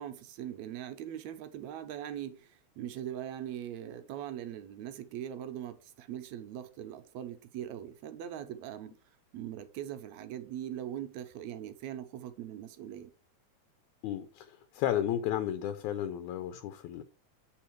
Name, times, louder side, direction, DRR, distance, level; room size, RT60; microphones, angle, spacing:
voice 1, 0.0-9.0 9.3-13.1, right 10 dB, 75° right, 1.9 m, -41 dB
voice 2, 14.0-17.0, left 11 dB, 80° left, 2.1 m, -33 dB
8.7 x 4.1 x 4.6 m
omnidirectional pair, 3.4 m